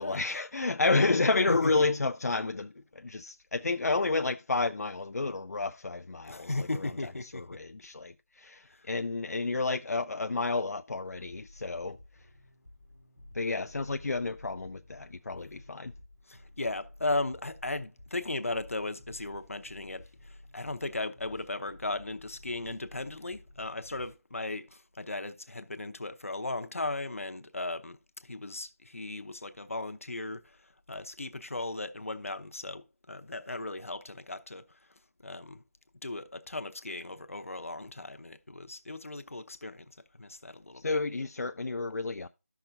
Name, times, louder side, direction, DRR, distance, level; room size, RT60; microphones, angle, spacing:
voice 1, 0.0-6.9 7.2-12.3 13.3-15.9 40.7-42.3, left 3 dB, 85° left, 0.4 m, -30 dB
voice 2, 1.5-1.9 6.3-7.6 8.7-8.9 16.3-34.6 35.2-35.6 36.0-39.9 40.2-41.0, left 2 dB, 60° left, 0.8 m, -36 dB
sound 1, 11.1-24.1, left 1 dB, ahead, 0.6 m, -54 dB
13.5 x 5.9 x 2.5 m
figure-of-eight pair, 180°, 8 cm